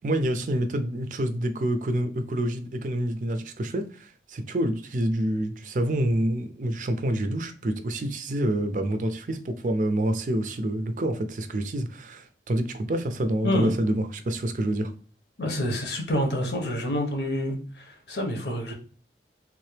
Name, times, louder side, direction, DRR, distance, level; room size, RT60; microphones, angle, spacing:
voice 1, 0.0-14.9, right 1 dB, 45° right, 0.4 m, -27 dB
voice 2, 13.4-13.7 15.4-18.7, left 1 dB, 80° left, 1.1 m, -28 dB
3.6 x 2.8 x 3.2 m
head